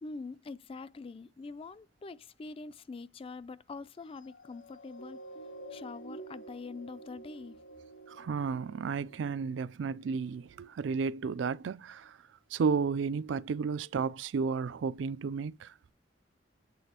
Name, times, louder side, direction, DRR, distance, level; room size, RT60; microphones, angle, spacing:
voice 1, 0.0-7.6, left 4 dB, 30° left, 0.3 m, -44 dB
sound 1, 4.0-10.7 11.3-11.5, right 2 dB, 75° left, 0.6 m, -50 dB
voice 2, 8.1-12.2 12.5-15.7, right 5 dB, 75° right, 0.4 m, -32 dB
8.4 x 4.0 x 2.9 m
head